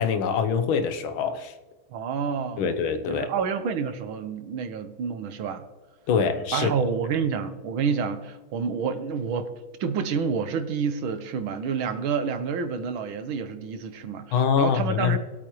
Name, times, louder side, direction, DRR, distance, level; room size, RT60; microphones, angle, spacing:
voice 1, 0.0-1.5 2.6-3.3 6.1-6.8 14.3-15.2, left 6 dB, 90° left, 9 dB, 1.8 m, -24 dB
voice 2, 1.9-2.7 3.1-5.7 6.5-9.5 9.8-15.2, right 6 dB, 85° right, 9 dB, 1.8 m, -28 dB
20.0 x 8.7 x 3.1 m, 1.3 s
omnidirectional pair, 2.2 m